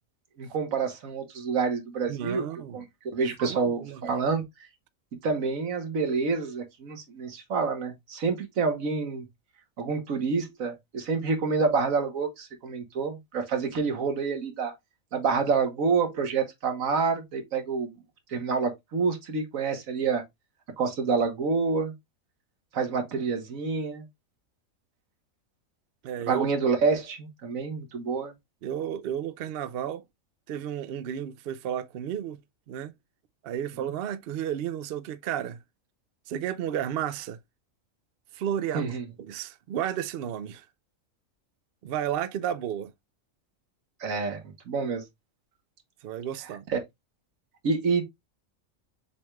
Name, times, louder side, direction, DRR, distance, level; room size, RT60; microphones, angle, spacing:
voice 1, 0.4-2.4 2.7-4.4 5.2-9.3 9.8-14.7 15.1-17.9 18.3-20.2 20.8-21.9 22.7-24.0 26.3-28.3 38.7-39.0 44.0-45.0 46.7-46.8 47.6-48.0, right 5 dB, 80° right, 1.5 m, -28 dB
voice 2, 2.1-2.8 3.4-4.0 26.0-26.5 28.6-30.0 30.5-32.4 32.7-32.9 33.4-35.6 36.3-37.4 38.3-38.9 39.3-40.7 41.8-42.9 46.0-46.7, right 10 dB, 60° right, 0.6 m, -32 dB
6.9 x 3.2 x 2.2 m
omnidirectional pair, 1.4 m